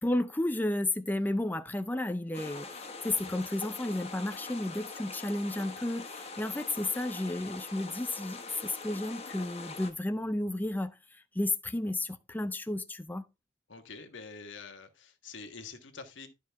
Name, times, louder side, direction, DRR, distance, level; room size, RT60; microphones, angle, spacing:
voice 1, 0.0-13.3, left 1 dB, 10° left, 0.4 m, -32 dB
sound 1, 2.3-9.9, left 4 dB, 35° left, 1.4 m, -43 dB
voice 2, 13.7-16.3, left 4 dB, 90° left, 1.5 m, -46 dB
11.5 x 5.1 x 3.5 m
head